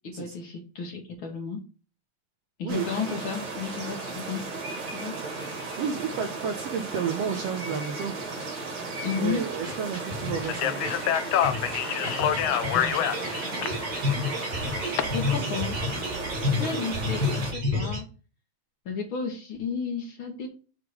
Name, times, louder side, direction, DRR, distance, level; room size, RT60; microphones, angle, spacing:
voice 1, 0.0-1.6 2.6-4.5 4.9-5.2 9.0-9.5 12.7-13.0 13.4-13.6 14.8-15.8 16.5-18.1 18.9-20.5, left 5 dB, 50° left, 2 dB, 1.9 m, -33 dB
sound 1, 2.7-17.5, right 3 dB, 55° right, 3.4 m, -35 dB
voice 2, 5.8-8.2 9.2-10.8, right 7 dB, 70° right, 6 dB, 1.6 m, -31 dB
sound 2, 9.2-18.0, left 2 dB, 30° right, 2.0 m, -31 dB
Speech, 10.5-15.0, left 11 dB, 75° left, 1.5 m, -27 dB
7.9 x 3.6 x 4.7 m, 0.35 s
omnidirectional pair, 3.4 m